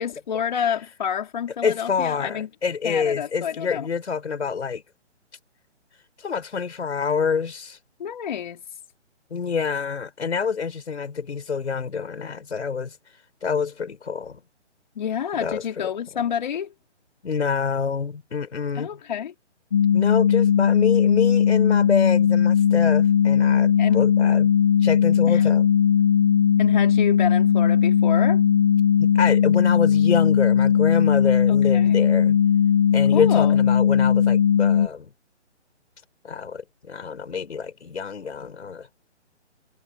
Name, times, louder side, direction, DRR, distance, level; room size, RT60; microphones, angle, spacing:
voice 1, 0.0-2.5 2.8-3.9 8.0-8.6 15.0-16.7 18.7-19.3 23.8-24.0 25.3-25.4 26.6-28.4 31.5-32.0 33.1-33.6, left 8 dB, 40° left, 4.2 m, -29 dB
voice 2, 1.6-4.8 6.2-7.8 9.3-13.0 13.4-14.4 15.4-15.6 17.2-18.9 19.9-24.5 24.8-25.7 29.0-32.4 32.9-35.1 36.2-38.9, left 5 dB, 65° left, 5.2 m, -27 dB
sound 1, 19.7-34.9, left 8 dB, 20° left, 0.8 m, -18 dB
hypercardioid pair, 170°, 36 cm